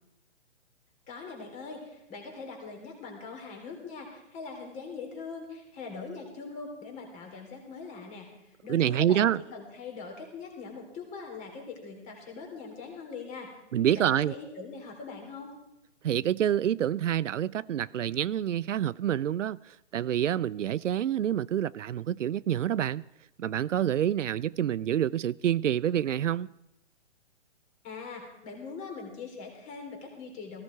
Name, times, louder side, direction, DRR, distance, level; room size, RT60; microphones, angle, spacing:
voice 1, 1.1-13.5 13.9-15.5 27.8-30.6, left 4 dB, 20° left, 3.7 m, -42 dB
voice 2, 8.7-9.4 13.7-14.3 16.0-23.0 23.4-26.5, right 10 dB, 80° right, 0.5 m, -27 dB
18.0 x 15.5 x 4.6 m
hypercardioid pair, 145°, 36 cm